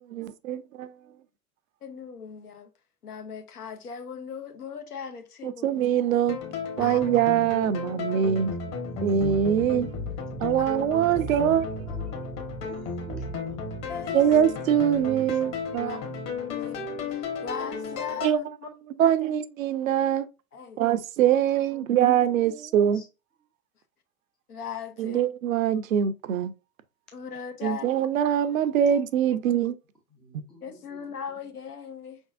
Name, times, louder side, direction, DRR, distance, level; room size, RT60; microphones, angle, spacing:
voice 1, 0.1-0.9 5.4-6.4 6.8-8.5 9.0-9.9 10.4-12.0 14.1-16.0 18.2-18.4 19.0-20.3 20.8-23.0 25.0-26.5 27.6-29.7, right 9 dB, 65° right, 0.6 m, -23 dB
voice 2, 1.8-2.7 3.0-5.7 6.8-7.0 11.9-12.1 13.9-14.2 15.8-16.0 16.5-18.7 19.0-19.1 20.5-20.8 24.5-25.2 27.1-27.8 30.6-32.2, left 6 dB, 75° left, 1.0 m, -38 dB
sound 1, 6.3-18.3, left 4 dB, 35° left, 1.3 m, -34 dB
voice 3, 11.9-13.5 15.3-15.4 21.7-22.0 22.4-23.1 30.1-31.1, right 2 dB, ahead, 0.3 m, -49 dB
5.2 x 3.5 x 2.5 m
figure-of-eight pair, 95°, 45 cm